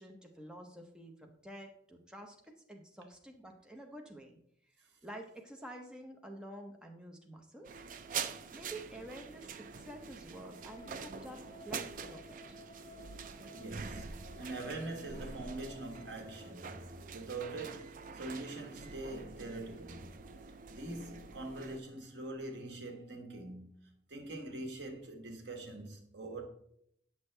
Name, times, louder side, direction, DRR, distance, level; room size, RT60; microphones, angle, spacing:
voice 1, 0.0-2.4 2.7-4.4 5.0-7.7 8.5-9.5 9.8-12.2 12.5-12.6, right 1 dB, 5° right, 0.7 m, -49 dB
sound 1, 7.6-21.8, right 6 dB, 45° right, 0.4 m, -45 dB
sound 2, 10.5-16.5, left 2 dB, 25° left, 0.4 m, -57 dB
voice 2, 13.5-16.8 17.1-26.5, right 2 dB, 85° right, 1.3 m, -44 dB
8.5 x 6.1 x 3.3 m
head